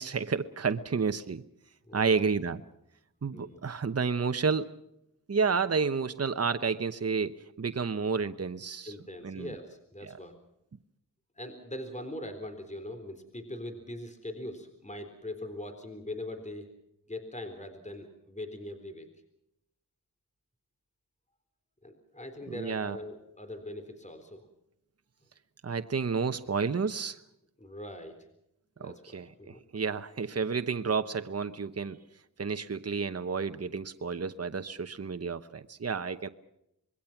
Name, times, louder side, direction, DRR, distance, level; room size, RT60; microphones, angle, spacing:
voice 1, 0.0-1.4 1.9-2.6 3.2-4.7 5.3-8.9 9.2-9.5 10.0-10.2 22.5-23.0 25.6-27.2 28.8-32.0 32.4-36.3, right 5 dB, 45° right, 10 dB, 1.0 m, -31 dB
voice 2, 1.9-2.3 3.3-3.6 8.8-10.3 11.4-16.7 17.1-19.1 21.8-24.5 27.6-28.2 28.8-29.6, left 1 dB, 20° left, 7 dB, 3.9 m, -41 dB
26.0 x 22.0 x 5.9 m, 0.79 s
wide cardioid pair, 55°, 34 cm